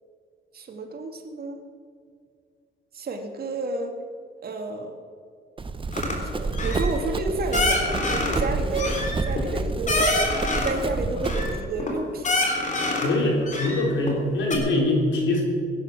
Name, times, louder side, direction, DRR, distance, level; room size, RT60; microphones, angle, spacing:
voice 1, 0.5-1.6 2.9-4.0 4.4-5.0 6.4-10.2 10.5-12.5, right 2 dB, 50° right, 4 dB, 2.1 m, -31 dB
Run, 5.6-11.6, right 3 dB, 25° right, 1.0 m, -29 dB
sound 1, 5.9-6.2 6.5-6.9 7.5-8.4 8.7-10.8 11.2-11.9 12.2-13.1 13.5-14.2 14.5-14.6, left 2 dB, 40° left, 3.5 m, -26 dB
voice 2, 13.0-15.4, left 2 dB, 70° left, -1 dB, 4.2 m, -23 dB
17.5 x 9.6 x 6.2 m, 2.2 s
cardioid pair, 90°, 20 cm